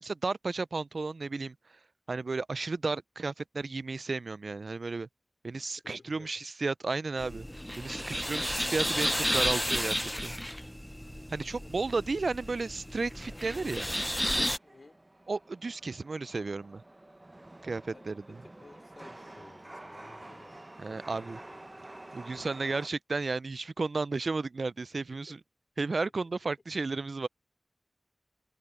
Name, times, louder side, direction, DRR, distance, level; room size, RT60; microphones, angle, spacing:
voice 1, 0.0-1.5 2.1-5.1 5.4-7.5 7.8-10.3 11.3-13.9 15.3-16.8 17.6-18.2 20.8-21.4 22.1-25.4 25.8-27.3, right 3 dB, 80° right, 0.4 m, -33 dB
voice 2, 5.8-6.4 11.6-12.2 14.6-15.0 17.9-21.9 24.9-25.4, left 3 dB, 75° left, 4.1 m, -57 dB
sound 1, 7.2-14.6, equal, 10° left, 0.5 m, -32 dB
Chatter / Subway metro underground, 10.4-22.9, right 1 dB, 35° right, 0.7 m, -51 dB
wide cardioid pair, 45°, 0 cm